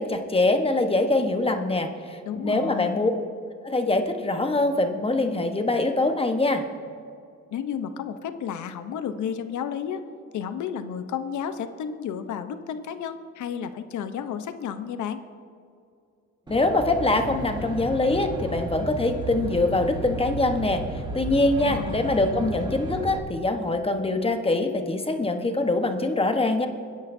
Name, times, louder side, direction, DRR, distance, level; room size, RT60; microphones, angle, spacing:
voice 1, 0.0-3.1 3.6-6.6 16.5-20.8 21.1-26.7, left 2 dB, 20° left, 6 dB, 1.1 m, -24 dB
voice 2, 2.2-3.0 7.5-10.0 10.3-15.2 21.6-22.5, left 8 dB, 75° left, 10 dB, 0.9 m, -32 dB
Aircraft, 16.5-23.2, right 2 dB, 15° right, 1.6 m, -34 dB
23.0 x 10.5 x 2.7 m, 2.4 s
cardioid pair, 90°, 30 cm